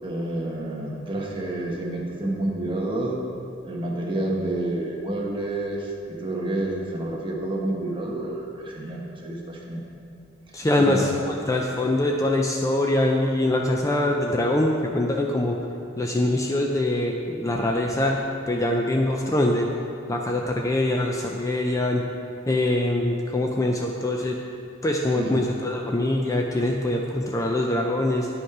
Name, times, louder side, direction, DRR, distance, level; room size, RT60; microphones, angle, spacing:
voice 1, 0.0-3.2 3.6-5.8 6.1-9.8 10.8-11.0 25.2-25.4, right 1 dB, 25° right, -2 dB, 1.2 m, -29 dB
voice 2, 10.5-15.6 16.0-18.2 18.5-19.7 20.1-22.0 22.5-24.4 24.8-28.3, left 1 dB, 15° left, 1 dB, 0.4 m, -23 dB
10.5 x 5.3 x 4.8 m, 2.6 s
head